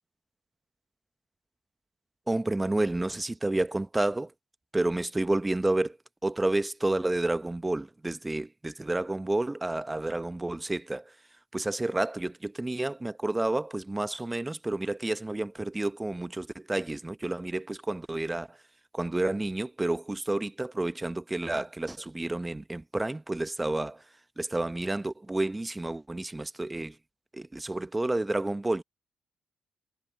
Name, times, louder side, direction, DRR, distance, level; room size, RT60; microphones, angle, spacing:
voice 1, 2.3-4.3 4.7-6.0 6.2-11.2 11.5-18.6 18.9-24.1 24.4-27.0 27.3-28.8, right 2 dB, 15° right, 0.9 m, -30 dB
supercardioid pair, 65°, 0 cm